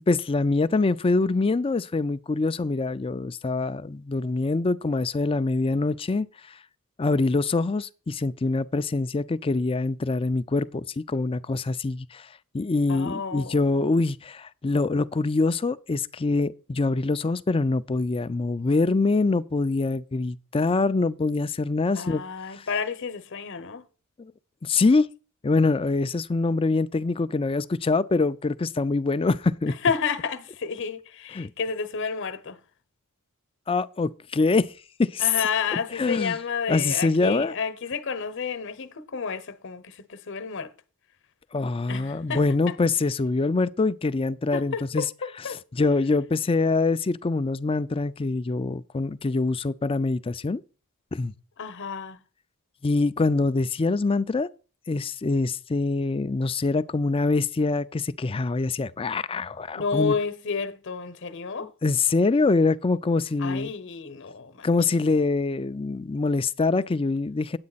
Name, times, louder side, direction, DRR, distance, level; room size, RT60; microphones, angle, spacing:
voice 1, 0.1-6.6 7.0-12.3 12.5-22.2 22.5-22.7 24.2-24.3 24.6-25.1 25.4-29.8 31.3-31.5 33.7-34.7 35.0-35.3 35.7-36.4 36.7-37.5 41.5-45.0 45.5-50.6 51.1-51.3 52.8-54.5 54.9-60.1 61.8-63.7 64.6-67.6, left 3 dB, 25° left, 0.4 m, -24 dB
voice 2, 12.9-13.8 21.9-23.8 29.8-32.6 35.2-40.7 41.9-42.4 44.5-45.6 51.6-52.2 59.7-61.7 63.4-64.7, left 5 dB, 55° left, 0.9 m, -30 dB
9.6 x 8.2 x 4.0 m
head